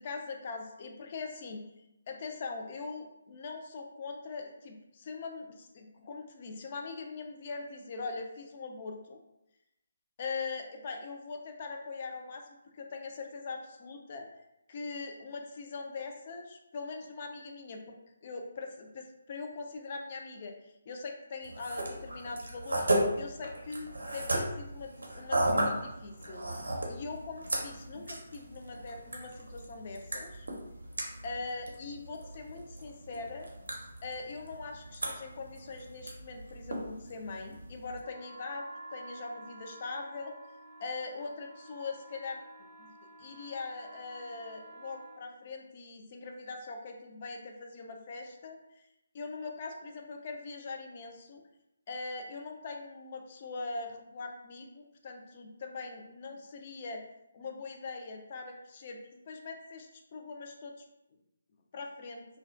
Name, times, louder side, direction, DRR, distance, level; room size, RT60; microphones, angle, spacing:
voice 1, 0.0-1.6 2.1-9.2 10.2-14.3 14.7-20.5 20.9-26.5 26.9-30.5 31.2-33.5 34.0-40.3 40.8-42.4 42.8-42.9 43.2-48.6 49.1-51.4 51.9-57.0 57.3-60.8 61.7-62.3, left 4 dB, 40° left, 3 dB, 0.3 m, -42 dB
sound 1, 21.4-38.0, right 1 dB, 75° right, 0.5 m, -36 dB
sound 2, 38.0-45.2, right 2 dB, 30° right, 0.6 m, -51 dB
2.3 x 2.2 x 2.4 m, 0.87 s
figure-of-eight pair, 145°, 0 cm